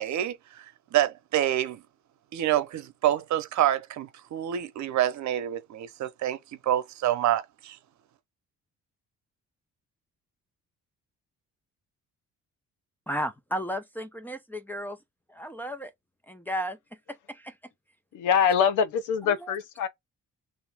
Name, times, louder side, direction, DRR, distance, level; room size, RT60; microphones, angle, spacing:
voice 1, 0.0-1.8 2.3-6.4 6.6-7.8, right 12 dB, 70° right, 0.8 m, -27 dB
voice 2, 13.1-15.0 15.3-15.9 16.3-16.8 17.1-17.6 19.2-19.5, equal, 5° left, 0.6 m, -34 dB
voice 3, 18.1-19.9, left 7 dB, 90° left, 0.8 m, -24 dB
3.0 x 2.6 x 3.4 m
cardioid pair, 90°, 30 cm